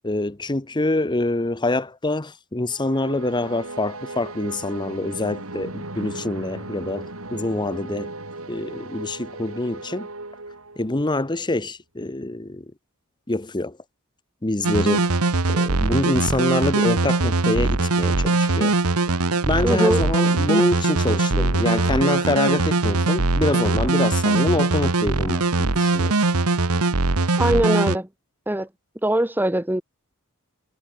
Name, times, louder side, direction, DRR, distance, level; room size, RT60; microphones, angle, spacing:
voice 1, 0.0-8.1 8.5-10.1 10.8-12.7 13.3-13.8 14.4-15.2 15.5-18.8 19.5-26.2, left 2 dB, 20° left, 1.0 m, -25 dB
sound 1, 2.7-11.1, right 2 dB, 65° right, 5.1 m, -36 dB
sound 2, 14.6-28.0, right 3 dB, 85° right, 1.4 m, -21 dB
voice 2, 19.6-20.0 27.4-28.1 28.5-28.7 29.0-29.8, right 1 dB, 10° right, 1.8 m, -21 dB
head